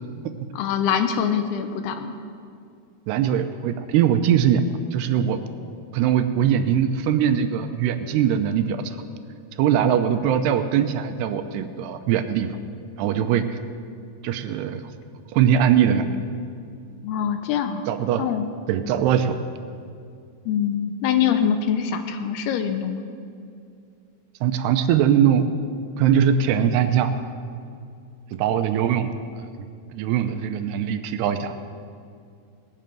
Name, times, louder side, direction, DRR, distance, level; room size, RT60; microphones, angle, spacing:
voice 1, 0.5-2.2 17.0-17.9 18.2-18.5 20.5-23.0, left 8 dB, 80° left, 8 dB, 2.6 m, -24 dB
voice 2, 3.1-4.6 4.9-5.4 5.9-9.0 9.6-12.5 13.0-13.4 14.2-14.8 15.3-16.1 17.9-18.3 18.7-19.4 24.4-25.4 26.0-27.1 28.4-29.5 29.9-31.5, right 9 dB, 85° right, 8 dB, 2.8 m, -21 dB
19.0 x 6.7 x 9.0 m, 2.4 s
omnidirectional pair, 4.8 m